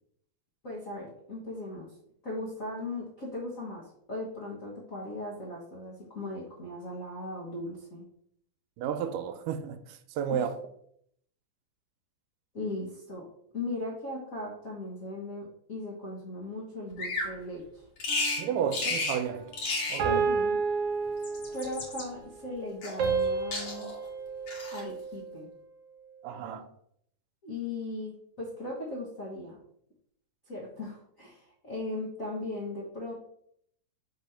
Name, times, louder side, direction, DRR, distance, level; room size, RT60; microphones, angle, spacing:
voice 1, 0.6-1.9 2.2-8.0 10.3-10.4 12.5-13.3 13.5-17.8 18.5-18.7 20.0-20.6 21.5-23.9 24.7-25.5 27.4-29.6 30.5-33.1, left 2 dB, 85° left, 0.7 m, -38 dB
voice 2, 8.8-10.5 18.4-19.5 19.9-20.2 26.2-26.7, right 8 dB, 85° right, 2.2 m, -32 dB
Bird vocalization bird call bird song, 17.0-17.3 18.0-18.4 18.7-19.2 19.5-20.0 21.1-22.0 22.8-23.3 23.5-24.0 24.5-24.8, left 3 dB, 45° left, 1.6 m, -32 dB
sound 1, 18.1-18.8 20.0-21.8 23.0-25.4, right 5 dB, 60° right, 1.5 m, -31 dB
4.8 x 4.1 x 5.6 m
omnidirectional pair, 3.7 m